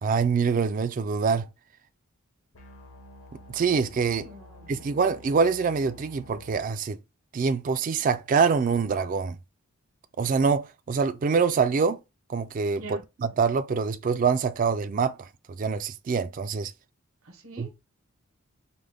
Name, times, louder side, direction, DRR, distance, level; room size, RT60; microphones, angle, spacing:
voice 1, 0.0-1.5 3.3-4.3 4.7-7.0 7.3-9.4 10.2-12.0 12.3-15.3 15.6-16.7 17.6-17.8, right 5 dB, 40° right, 0.3 m, -25 dB
sound 1, 2.5-6.6, left 1 dB, 70° left, 1.0 m, -49 dB
voice 2, 4.2-4.8 12.8-13.0 17.2-17.8, right 2 dB, 75° right, 1.0 m, -44 dB
4.9 x 2.1 x 3.4 m
head